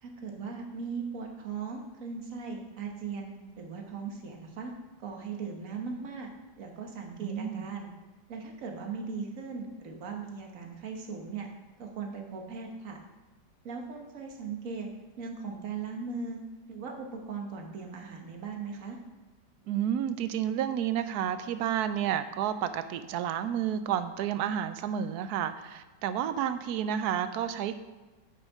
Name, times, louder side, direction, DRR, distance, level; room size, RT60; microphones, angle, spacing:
voice 1, 0.0-4.7 5.0-6.3 6.6-7.9 8.3-11.5 11.8-13.0 13.6-14.9 15.2-16.4 16.7-19.0, right 5 dB, 50° right, 2 dB, 1.6 m, -38 dB
voice 2, 7.2-7.7 19.7-27.8, right 9 dB, 70° right, 11 dB, 1.0 m, -30 dB
8.6 x 8.2 x 3.6 m, 1.3 s
omnidirectional pair, 1.9 m